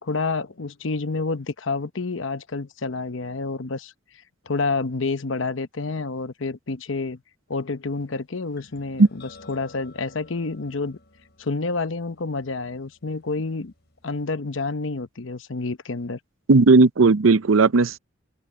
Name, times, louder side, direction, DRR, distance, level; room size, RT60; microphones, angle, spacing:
voice 1, 0.0-3.9 4.5-7.2 7.5-11.0 11.4-13.7 14.0-16.2, left 3 dB, 75° left, 0.9 m, -29 dB
sound 1, 8.6-14.2, left 3 dB, 55° left, 6.1 m, -52 dB
voice 2, 16.5-18.0, right 3 dB, 90° right, 0.7 m, -15 dB
head